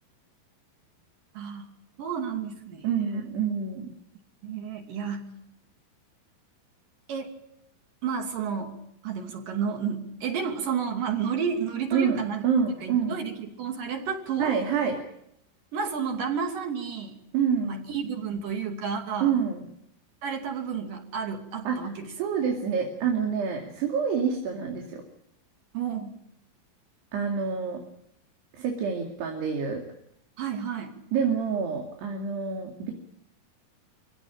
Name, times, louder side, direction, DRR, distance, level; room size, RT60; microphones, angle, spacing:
voice 1, 1.3-1.7 2.0-3.3 4.4-5.3 7.1-7.3 8.0-8.8 9.0-12.4 12.8-14.6 15.7-17.2 17.6-19.4 20.2-22.1 25.7-26.2 30.4-31.0, right 6 dB, 55° right, 4 dB, 4.1 m, -31 dB
voice 2, 2.8-3.9 11.9-12.2 12.4-13.2 14.4-15.0 17.3-17.8 19.2-19.7 21.6-21.8 22.2-25.0 27.1-27.8 28.5-29.8 31.1-32.9, right 6 dB, 80° right, 1 dB, 4.6 m, -27 dB
25.5 x 16.5 x 9.0 m, 0.77 s
omnidirectional pair, 4.8 m